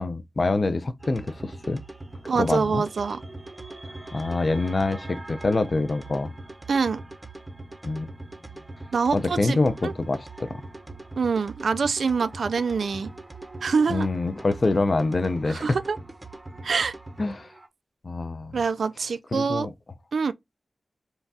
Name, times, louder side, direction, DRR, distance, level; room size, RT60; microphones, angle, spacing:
voice 1, 0.0-1.8 2.4-2.8 4.1-6.3 7.8-8.1 9.1-10.6 13.9-15.7 17.2-17.5 18.0-18.6 19.3-19.7, left 3 dB, 45° left, 0.5 m, -25 dB
sound 1, 1.0-17.7, right 2 dB, 20° right, 0.7 m, -41 dB
voice 2, 2.3-3.2 6.7-7.0 8.9-9.9 11.1-13.1 13.6-14.1 15.5-16.0 16.6-16.9 18.5-19.7 20.1-20.3, right 5 dB, 80° right, 0.3 m, -25 dB
5.5 x 2.3 x 2.7 m
wide cardioid pair, 115°, 0 cm